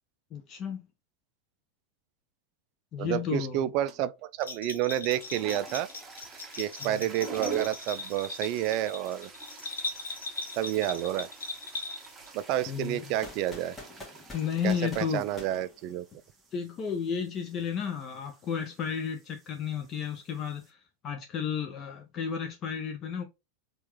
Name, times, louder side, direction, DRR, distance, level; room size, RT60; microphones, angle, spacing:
voice 1, 0.3-0.8 2.9-3.6 6.8-7.1 12.7-13.1 14.3-15.2 16.5-20.8 21.0-23.2, left 7 dB, 30° left, 0.6 m, -33 dB
voice 2, 3.0-5.9 6.6-9.3 10.6-11.3 12.3-13.8 14.6-16.0, right 12 dB, 40° right, 0.3 m, -30 dB
sound 1, 3.9-4.2 4.9-20.7, right 3 dB, 15° right, 0.9 m, -48 dB
Bell, 4.4-12.3, left 3 dB, 70° left, 0.9 m, -39 dB
sound 2, 13.2-16.4, left 1 dB, 15° left, 1.4 m, -46 dB
4.4 x 2.4 x 3.1 m
figure-of-eight pair, 90°, 0 cm